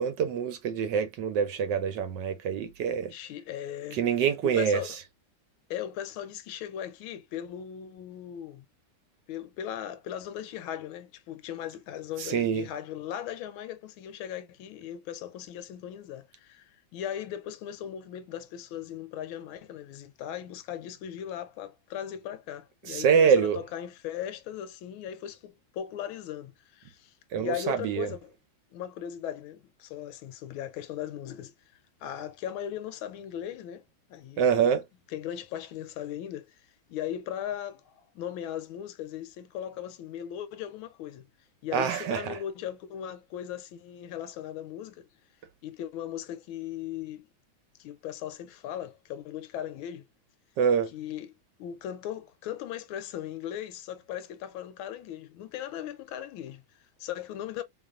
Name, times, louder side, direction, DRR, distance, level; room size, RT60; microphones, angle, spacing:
voice 1, 0.0-3.1 3.9-5.0 12.2-12.7 22.8-23.6 27.3-28.1 34.4-34.8 41.7-42.4 50.6-50.9, right 7 dB, 70° right, 1.1 m, -25 dB
voice 2, 3.1-4.0 4.4-4.9 5.7-8.6 9.3-28.3 28.7-31.5 32.0-34.7 35.1-41.3 41.6-45.1 45.6-47.3 47.8-50.1 50.9-57.6, left 10 dB, 85° left, 1.5 m, -38 dB
3.9 x 3.1 x 2.4 m
omnidirectional pair, 2.2 m